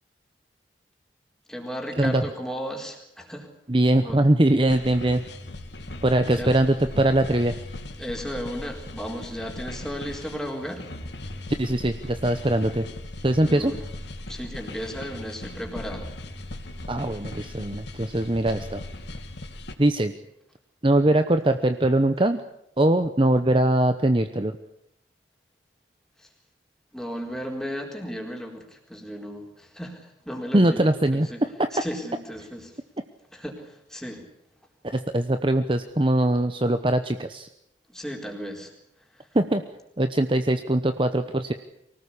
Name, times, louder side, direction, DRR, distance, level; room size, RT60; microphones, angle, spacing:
voice 1, 1.5-3.5 4.0-4.2 6.4-6.5 8.0-10.8 13.4-13.8 14.3-16.1 26.2-26.3 26.9-30.8 31.1-31.4 31.7-32.8 33.3-34.3 37.9-38.7 39.1-39.3, equal, 5° left, 1 dB, 4.3 m, -35 dB
voice 2, 3.7-5.2 6.0-7.6 11.6-12.8 13.2-13.7 16.9-18.8 19.8-20.1 20.8-22.4 22.8-24.5 30.5-31.3 31.8-31.9 34.8-37.5 39.3-39.6 40.0-41.5, right 1 dB, 25° right, 8 dB, 0.9 m, -22 dB
sound 1, 4.7-19.8, left 1 dB, 65° left, 2.5 m, -38 dB
24.0 x 18.5 x 8.6 m, 0.80 s
head